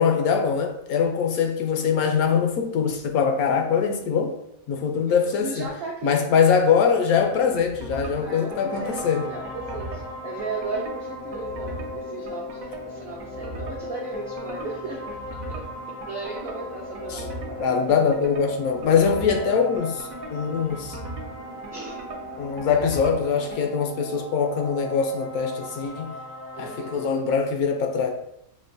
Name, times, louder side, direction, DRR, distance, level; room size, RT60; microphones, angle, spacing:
voice 1, 0.0-4.3 4.7-5.7 6.0-9.3 17.1-17.2 17.6-21.0 22.4-26.1 26.6-28.1, left 6 dB, 90° left, 1.1 m, -23 dB
voice 2, 5.1-6.2 8.1-15.2 15.5-17.9 21.7-22.1 26.5-27.1, right 4 dB, 60° right, 0.7 m, -36 dB
sound 1, 7.1-23.7, right 2 dB, 75° right, 1.0 m, -40 dB
sound 2, 8.2-27.1, left 2 dB, 45° left, 0.5 m, -37 dB
6.0 x 2.2 x 2.6 m
omnidirectional pair, 1.5 m